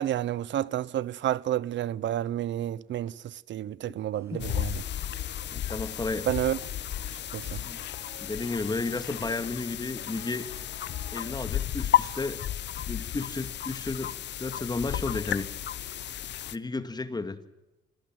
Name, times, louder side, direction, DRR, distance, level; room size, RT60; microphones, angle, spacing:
voice 1, 0.0-4.8 6.3-6.6 7.3-7.6, right 12 dB, 70° right, 0.8 m, -30 dB
sound 1, 4.1-11.6, right 1 dB, 15° right, 6.6 m, -55 dB
sound 2, 4.4-16.6, left 11 dB, 60° left, 0.9 m, -33 dB
voice 2, 5.5-6.3 7.4-7.8 8.2-10.5 11.1-12.4 12.9-14.1 14.4-15.5 16.5-17.4, left 3 dB, 20° left, 2.0 m, -33 dB
sound 3, 5.6-12.9, left 8 dB, 85° left, 4.9 m, -54 dB
26.5 x 18.0 x 7.6 m
cardioid pair, 90°, 20 cm